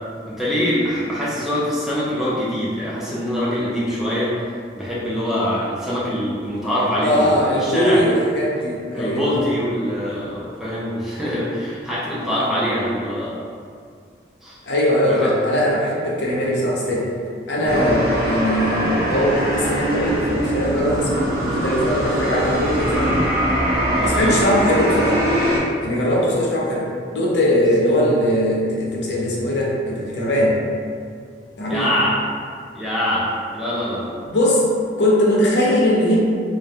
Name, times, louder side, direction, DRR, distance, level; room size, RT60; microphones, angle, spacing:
voice 1, 0.3-4.4 4.8-8.0 8.9-13.4 14.4-14.6 15.0-15.3 17.6-17.9 23.9-24.3 31.7-32.2 32.7-34.1, equal, ahead, -8 dB, 0.3 m, -24 dB
voice 2, 7.0-9.5 14.7-17.1 17.5-23.2 24.0-25.2 25.8-30.6 31.6-31.9 34.3-34.6 35.0-36.2, equal, 70° left, -4 dB, 0.5 m, -20 dB
sound 1, 17.7-25.6, right 1 dB, 55° right, 0.6 m, -22 dB
2.2 x 2.2 x 2.6 m, 2.2 s
head